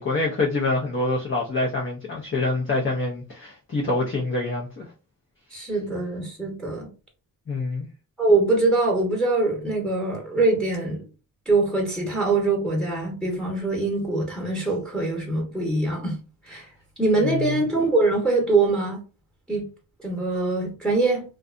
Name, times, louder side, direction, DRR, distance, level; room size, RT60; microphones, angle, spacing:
voice 1, 0.0-4.8 7.5-7.9 17.2-17.6, left 2 dB, 30° left, 0.7 m, -26 dB
voice 2, 5.5-6.9 8.2-11.0 11.5-16.2 16.4-16.7 17.0-19.0 19.5-19.6 20.0-21.2, right 3 dB, ahead, 1.1 m, -23 dB
2.5 x 2.3 x 2.5 m
cardioid pair, 70°, 39 cm